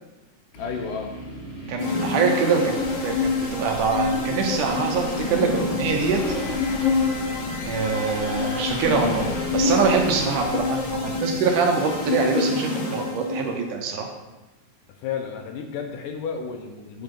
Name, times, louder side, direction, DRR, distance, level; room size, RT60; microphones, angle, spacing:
voice 1, 0.5-1.1 15.0-17.0, left 6 dB, 75° left, 5 dB, 2.3 m, -32 dB
sound 1, 0.5-3.8 5.9-13.2, equal, 40° left, 0.8 m, -41 dB
voice 2, 1.7-2.7 3.0-6.2 7.7-14.1, right 5 dB, 70° right, 2 dB, 2.4 m, -24 dB
sound 2, 1.8-13.6, left 4 dB, 55° left, 1.8 m, -27 dB
sound 3, 2.8-11.2, right 1 dB, 90° left, 5.3 m, -38 dB
9.3 x 8.9 x 3.8 m, 1.0 s
omnidirectional pair, 4.1 m